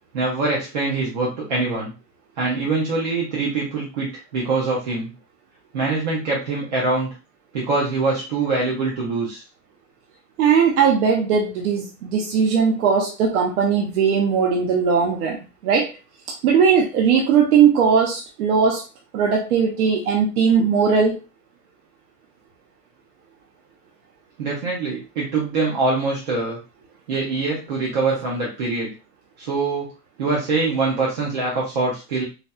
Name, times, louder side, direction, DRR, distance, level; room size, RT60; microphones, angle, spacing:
voice 1, 0.1-1.9 2.4-5.1 5.7-7.1 7.5-9.4 24.4-26.6 27.1-28.9 29.4-29.9 30.2-32.2, right 3 dB, 30° right, -4 dB, 0.4 m, -24 dB
voice 2, 10.4-15.4 15.6-15.9 16.4-18.8 19.1-21.2, right 6 dB, 65° right, 1 dB, 0.7 m, -18 dB
4.1 x 2.2 x 2.2 m, 0.30 s
supercardioid pair, 175°, 48 cm